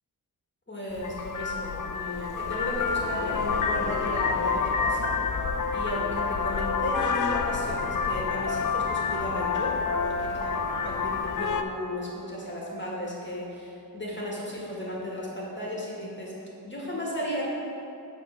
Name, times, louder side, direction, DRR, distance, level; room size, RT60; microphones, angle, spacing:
voice 1, 0.7-5.1 5.7-16.3 16.6-17.4, left 1 dB, 25° left, -5 dB, 1.8 m, -35 dB
Vehicle horn car horn honking, 1.0-11.6, left 5 dB, 50° left, 0.4 m, -28 dB
7.2 x 4.3 x 5.7 m, 2.8 s
wide cardioid pair, 75°, 41 cm